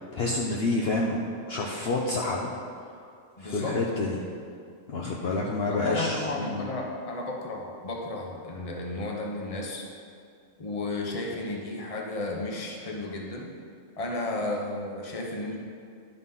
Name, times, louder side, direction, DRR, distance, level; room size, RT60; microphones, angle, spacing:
voice 1, 0.1-1.2 1.5-2.5 3.4-4.2 4.9-6.6, left 2 dB, 55° left, -2 dB, 0.9 m, -28 dB
voice 2, 3.4-3.8 5.7-9.9 10.6-13.5 14.0-15.6, left 2 dB, 30° left, 0 dB, 1.0 m, -33 dB
11.0 x 4.1 x 5.5 m, 2.3 s
omnidirectional pair, 1.4 m